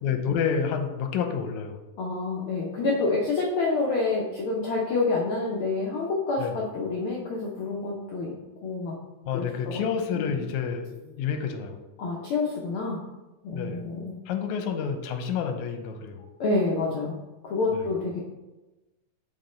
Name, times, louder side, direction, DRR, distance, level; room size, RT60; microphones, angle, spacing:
voice 1, 0.0-1.8 6.4-6.6 9.3-11.8 13.5-13.8 14.3-16.3 17.7-17.8, left 7 dB, 85° left, 6 dB, 2.1 m, -29 dB
voice 2, 2.0-8.3 8.6-9.0 9.3-9.8 10.1-10.3 12.0-13.0 13.4-14.2 16.4-17.2 17.4-18.2, left 3 dB, 70° left, -3 dB, 1.3 m, -28 dB
6.6 x 4.1 x 4.3 m, 1.1 s
omnidirectional pair, 3.3 m